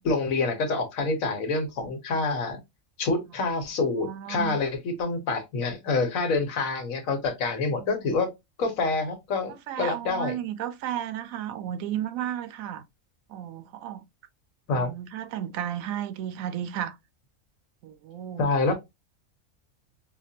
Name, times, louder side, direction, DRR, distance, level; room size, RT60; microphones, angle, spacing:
voice 1, 0.0-2.6 3.0-8.3 8.6-10.4 14.7-14.9 18.4-18.8, left 3 dB, 90° left, 1.4 m, -27 dB
voice 2, 4.0-4.6 7.9-8.2 9.5-12.8 13.3-14.0 14.8-17.0 17.8-18.5, right 10 dB, 90° right, 1.0 m, -33 dB
5.1 x 2.2 x 2.7 m
omnidirectional pair, 1.4 m